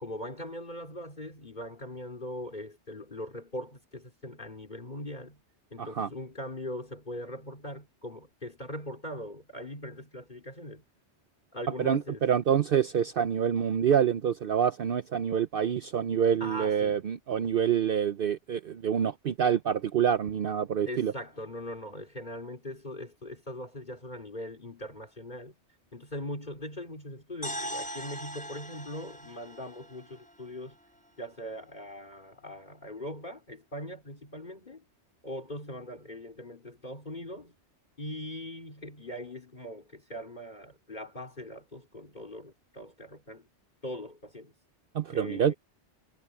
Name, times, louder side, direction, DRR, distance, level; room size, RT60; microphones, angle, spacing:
voice 1, 0.0-5.4 5.7-10.8 11.5-12.3 16.4-17.1 20.9-25.5 25.9-30.8 31.2-34.8 35.2-37.5 38.0-43.5 43.8-44.5 45.1-45.5, left 1 dB, 40° left, 4.0 m, -41 dB
voice 2, 5.8-6.1 11.8-21.1 44.9-45.5, right 8 dB, 55° right, 0.8 m, -27 dB
sound 1, 27.4-31.4, equal, 5° left, 4.4 m, -41 dB
omnidirectional pair, 1.2 m